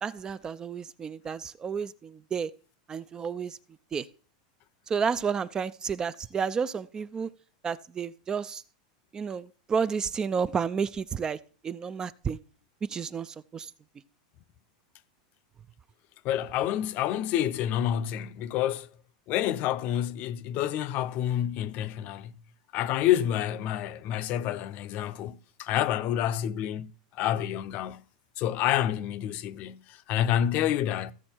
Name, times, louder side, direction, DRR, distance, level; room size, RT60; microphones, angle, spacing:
voice 1, 0.0-2.5 2.9-3.6 3.9-4.1 4.9-7.3 7.6-8.6 9.1-11.4 11.6-12.4 12.9-13.7, right 6 dB, 20° right, 0.4 m, -31 dB
voice 2, 16.2-18.9 19.3-22.3 22.7-28.0 28.4-31.1, left 11 dB, 40° left, 0.7 m, -28 dB
15.0 x 6.2 x 4.5 m
supercardioid pair, 145°, 4 cm